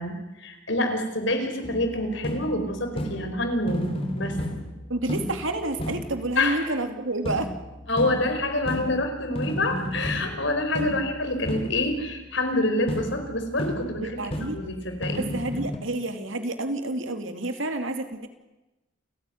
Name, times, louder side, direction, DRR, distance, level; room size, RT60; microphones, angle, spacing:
voice 1, 0.0-4.4 6.4-6.6 7.9-15.3, left 1 dB, 65° left, 6 dB, 4.7 m, -27 dB
sound 1, 1.6-6.5 7.2-12.1 12.9-15.8, equal, 30° left, 3.0 m, -33 dB
voice 2, 4.9-7.5 10.7-10.9 13.9-14.6 15.2-18.3, right 2 dB, 75° right, 7 dB, 2.8 m, -29 dB
29.0 x 16.0 x 9.3 m, 1.0 s
head